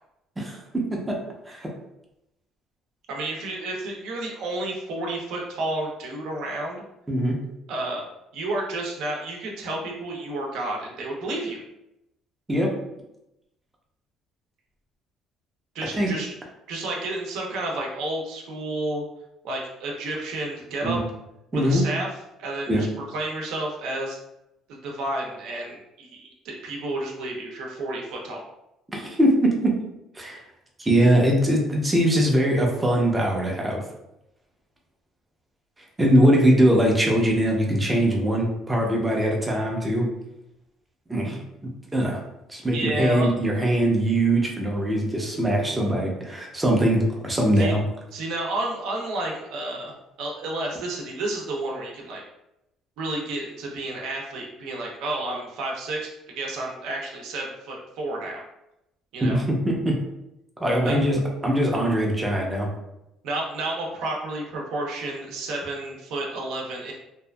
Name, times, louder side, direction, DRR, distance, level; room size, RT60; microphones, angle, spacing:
voice 1, 0.4-1.2 1.5-1.7 7.1-7.4 12.5-12.7 15.9-16.1 20.8-21.1 21.5-21.8 22.7-22.8 28.9-29.8 30.2-30.4 30.8-33.8 36.0-40.1 41.1-41.4 41.9-42.2 42.5-47.8 59.2-60.0 60.6-62.7, right 1 dB, 10° right, -1 dB, 0.5 m, -22 dB
voice 2, 3.1-6.8 7.7-8.1 8.3-11.6 15.7-16.3 16.7-19.0 19.4-21.0 21.5-22.1 22.4-24.2 24.8-28.4 42.7-43.3 47.6-47.7 48.1-52.2 53.0-58.4 59.1-59.4 60.8-61.0 63.2-66.9, right 2 dB, 75° right, -1 dB, 0.6 m, -31 dB
2.7 x 2.4 x 2.2 m, 0.88 s
cardioid pair, 150°, 0 cm